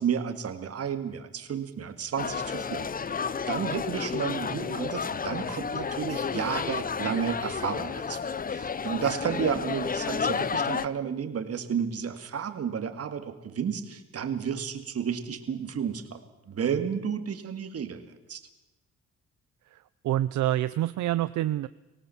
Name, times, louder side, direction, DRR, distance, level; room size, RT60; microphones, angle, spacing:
voice 1, 0.0-3.2 3.5-16.2 16.5-18.4, right 7 dB, 50° right, 8 dB, 2.4 m, -32 dB
sound 1, 2.2-10.9, left 6 dB, 30° left, 0.8 m, -31 dB
voice 2, 19.7-21.7, right 13 dB, 75° right, 14 dB, 0.7 m, -27 dB
24.5 x 17.5 x 7.2 m, 1.0 s
cardioid pair, 90°, 30 cm